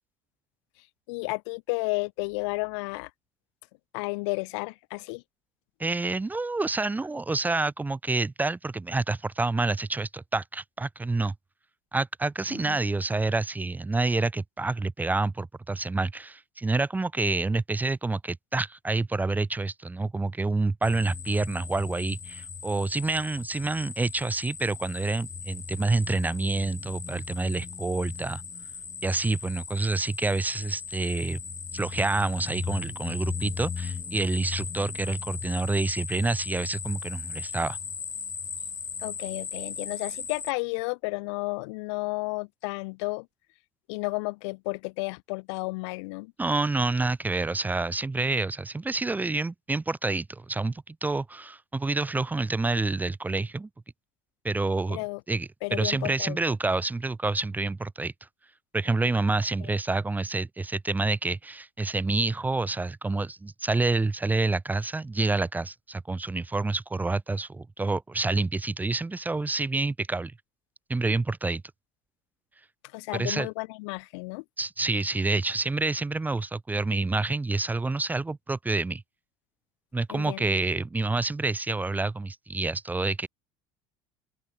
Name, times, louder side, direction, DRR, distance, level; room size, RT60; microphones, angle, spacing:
voice 1, 1.1-3.1 3.9-5.2 12.5-12.8 39.0-43.3 43.9-46.3 54.9-55.2 55.6-56.4 59.6-59.7 72.9-74.4 80.1-80.5, left 27 dB, 80° left, 5.9 m, -32 dB
voice 2, 5.8-11.3 11.9-28.4 29.0-31.4 31.7-37.8 46.4-53.7 54.4-55.0 55.3-58.1 58.7-70.3 70.9-71.6 73.1-73.5 74.6-79.0 79.9-83.3, right 3 dB, 10° right, 1.3 m, -28 dB
sound 1, 20.8-40.5, left 5 dB, 20° left, 1.7 m, -37 dB
open air
supercardioid pair, 120°, 14 cm